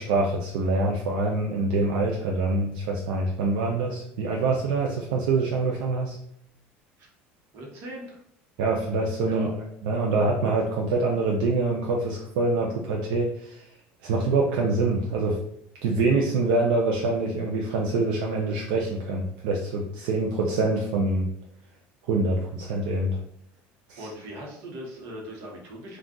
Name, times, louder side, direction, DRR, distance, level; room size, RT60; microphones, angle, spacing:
voice 1, 0.0-6.2 8.6-9.5 9.8-13.6 14.0-15.4 15.8-21.3 22.1-23.2 23.9-24.1, right 3 dB, 80° right, -1 dB, 0.5 m, -25 dB
voice 2, 7.5-8.2 9.2-9.5 20.0-20.1 24.0-26.0, equal, 60° right, -1 dB, 1.0 m, -39 dB
2.4 x 2.3 x 3.7 m, 0.71 s
cardioid pair, 130°, 5 cm